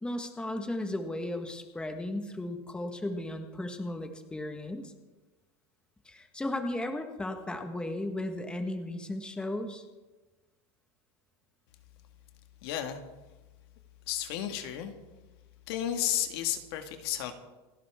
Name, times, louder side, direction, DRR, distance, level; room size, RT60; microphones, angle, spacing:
voice 1, 0.0-4.9 6.0-9.8, left 1 dB, 5° left, 5 dB, 1.4 m, -35 dB
voice 2, 12.6-13.0 14.1-14.9 15.7-17.3, left 11 dB, 70° left, 6 dB, 1.9 m, -32 dB
28.5 x 11.5 x 3.7 m, 1.2 s
supercardioid pair, 145°, 14 cm